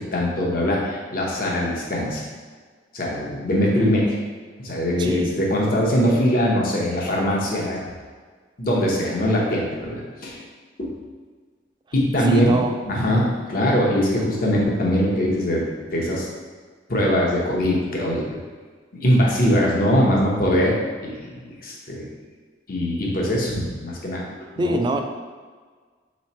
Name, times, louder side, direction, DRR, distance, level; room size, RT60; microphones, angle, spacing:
voice 1, 0.0-2.2 2.9-4.2 4.6-7.8 8.6-10.4 10.8-10.9 11.9-12.5 12.9-15.6 15.9-16.3 16.9-18.2 18.9-22.0 22.7-24.2 24.6-24.8, equal, 50° left, -3 dB, 0.9 m, -22 dB
voice 2, 5.0-5.3 12.3-12.7 14.2-14.3 24.6-25.0, right 1 dB, 25° right, 5 dB, 0.3 m, -24 dB
4.0 x 3.2 x 4.2 m, 1.5 s
head